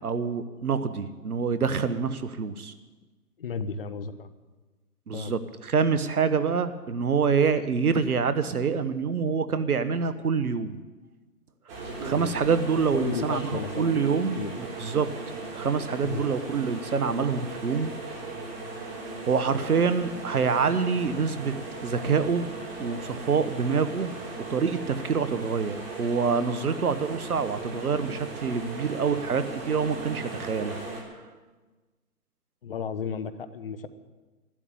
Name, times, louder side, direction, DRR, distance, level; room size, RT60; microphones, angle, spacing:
voice 1, 0.0-2.7 5.1-10.8 12.0-15.1 15.5-18.0 19.3-21.5 21.8-22.5 22.8-24.1 24.5-30.8, right 5 dB, 65° right, 12 dB, 1.3 m, -26 dB
voice 2, 3.4-4.3 5.1-5.3 12.9-14.1 14.4-14.5 16.0-16.2 32.6-33.9, left 6 dB, 35° left, 13 dB, 0.9 m, -33 dB
sound 1, 11.7-31.0, right 3 dB, 35° right, 3.7 m, -38 dB
13.0 x 12.0 x 8.7 m, 1.3 s
figure-of-eight pair, 145°, 47 cm